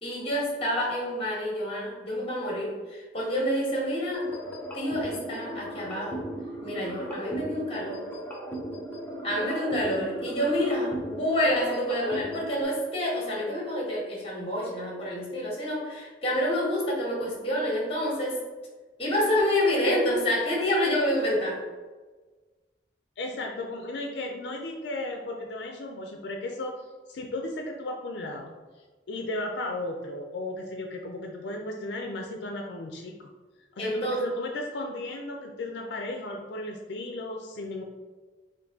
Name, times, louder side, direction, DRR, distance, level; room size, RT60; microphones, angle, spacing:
voice 1, 0.0-4.3 4.7-6.2 6.6-8.0 9.2-18.5 19.0-21.6 33.8-34.2, left 1 dB, 35° left, -2 dB, 1.2 m, -28 dB
sound 1, 4.1-12.6, right 1 dB, 10° left, 0.6 m, -37 dB
voice 2, 23.2-26.8 27.1-28.5 29.1-33.3 33.8-37.8, left 2 dB, 75° left, 1 dB, 0.4 m, -35 dB
3.9 x 2.6 x 3.5 m, 1.3 s
head